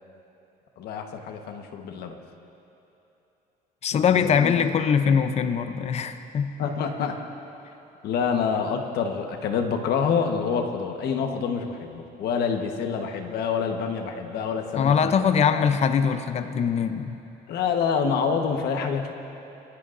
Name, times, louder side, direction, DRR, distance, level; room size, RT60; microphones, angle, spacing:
voice 1, 0.8-2.2 3.9-4.5 6.6-7.2 8.0-15.7 17.5-19.1, left 6 dB, 70° left, 4 dB, 1.3 m, -27 dB
voice 2, 3.8-6.5 14.8-17.2, left 7 dB, 40° left, 10 dB, 0.6 m, -22 dB
23.5 x 15.0 x 2.6 m, 2.9 s
cardioid pair, 110°, 17 cm